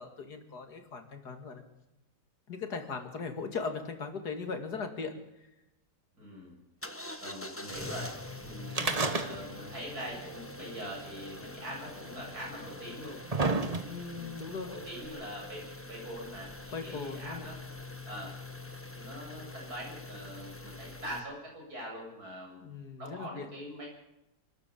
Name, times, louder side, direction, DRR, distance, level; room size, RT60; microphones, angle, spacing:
voice 1, 0.0-1.6 2.5-5.2 8.8-9.0 13.9-14.7 16.7-17.5 22.6-23.5, left 4 dB, 80° left, 6 dB, 2.8 m, -39 dB
voice 2, 6.1-6.6 7.2-8.1 8.4-13.2 13.5-17.6 18.0-18.3 18.9-22.6 23.0-23.9, equal, 70° right, -2 dB, 8.3 m, -43 dB
sound 1, 6.8-21.2, left 2 dB, 10° left, 1.3 m, -44 dB
sound 2, 8.7-9.7 10.0-10.1 11.1-11.2 12.1-12.2 12.8-14.2 15.0-15.1, right 3 dB, 25° right, 1.3 m, -30 dB
25.5 x 13.0 x 8.6 m, 0.90 s
omnidirectional pair, 1.7 m